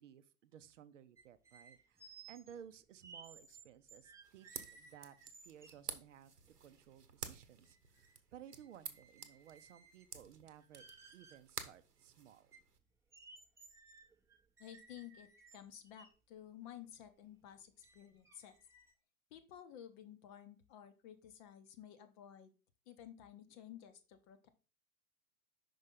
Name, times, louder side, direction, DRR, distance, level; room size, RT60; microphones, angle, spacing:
voice 1, 0.0-5.1 5.4-6.3 6.6-8.1 8.3-10.9 11.1-12.5, right 9 dB, 55° right, 12 dB, 0.6 m, -57 dB
sound 1, 1.2-5.9 6.5-6.6 6.9-8.2 8.5-10.2 10.6-11.4 12.0-12.1 12.5-16.1 16.8-16.9 17.3-17.5 17.8-18.9, right 4 dB, 5° right, 0.7 m, -60 dB
sound 2, 4.2-12.8, right 6 dB, 85° right, 0.9 m, -51 dB
voice 2, 14.6-18.6 19.3-22.5 22.9-24.5, left 10 dB, 30° left, 10 dB, 0.8 m, -54 dB
5.5 x 5.2 x 3.7 m, 0.35 s
figure-of-eight pair, 100°, 46 cm